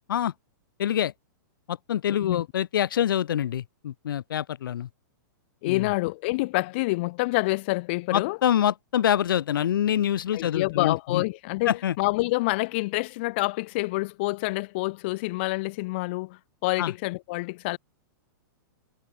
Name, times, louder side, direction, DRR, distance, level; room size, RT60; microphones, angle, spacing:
voice 1, 0.8-1.1 1.7-4.9 5.6-5.9 8.1-11.2 11.7-11.9 16.8-16.9, left 10 dB, 90° left, 0.6 m, -25 dB
voice 2, 5.6-8.4 10.3-17.8, left 23 dB, 30° left, 0.3 m, -27 dB
hypercardioid pair, 165°, 11 cm